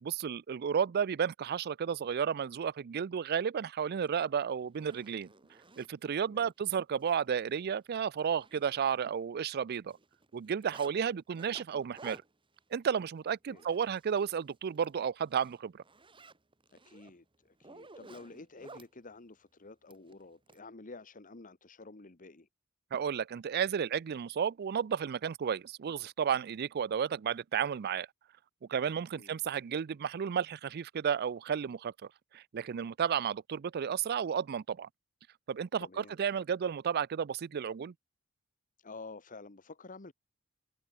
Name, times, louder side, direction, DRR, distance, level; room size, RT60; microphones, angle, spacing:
voice 1, 0.0-5.3 5.8-10.0 10.3-12.2 12.7-15.8 22.9-28.1 28.7-31.9 32.3-34.9 35.5-37.9, right 7 dB, 50° right, 0.4 m, -32 dB
Zipper (clothing), 4.1-4.2 4.6-5.9 6.5-6.7 7.0-7.1 7.5-7.6 7.9-9.3 9.5-10.9 11.4-14.3 14.6-14.9 15.3-18.9 19.9-20.6, right 3 dB, 25° right, 2.2 m, -54 dB
voice 2, 6.2-6.5 13.5-13.7 16.7-22.5 29.1-29.4 35.8-36.2 38.8-40.1, left 3 dB, 40° left, 1.3 m, -50 dB
head